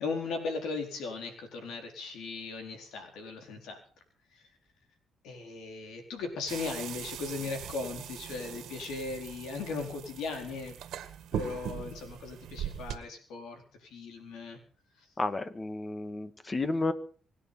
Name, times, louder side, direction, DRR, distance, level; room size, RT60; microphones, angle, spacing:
voice 1, 0.0-3.8 4.3-4.4 5.2-10.7 11.3-14.6 15.0-15.1, left 4 dB, 85° left, 5 dB, 4.5 m, -38 dB
sound 1, 6.5-13.0, right 10 dB, 80° right, 1.9 m, -40 dB
voice 2, 15.2-16.9, left 2 dB, 25° left, 12 dB, 1.8 m, -31 dB
24.5 x 10.0 x 5.8 m, 0.44 s
cardioid pair, 90°, 0 cm